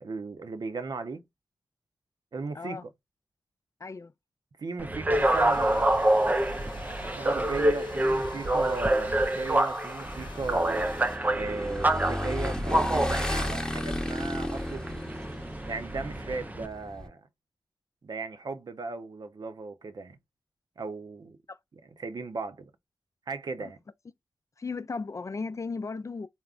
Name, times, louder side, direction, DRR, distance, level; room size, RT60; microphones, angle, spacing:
voice 1, 0.0-1.2 2.3-2.9 4.6-5.9 7.2-10.9 11.3-15.0 15.7-17.2 18.0-20.2 20.8-21.4 22.0-22.7 23.3-23.8, right 3 dB, 65° right, 0.6 m, -36 dB
voice 2, 2.5-2.8 3.8-4.1 21.5-21.6 23.6-23.7 24.6-26.3, left 4 dB, 45° left, 0.4 m, -36 dB
sound 1, 4.8-16.7, right 1 dB, 20° right, 0.5 m, -27 dB
sound 2, 5.1-11.2, left 5 dB, 90° left, 0.7 m, -48 dB
Motorcycle / Engine, 10.1-17.1, left 1 dB, 10° left, 0.9 m, -34 dB
3.6 x 2.0 x 2.4 m
cardioid pair, 60°, 8 cm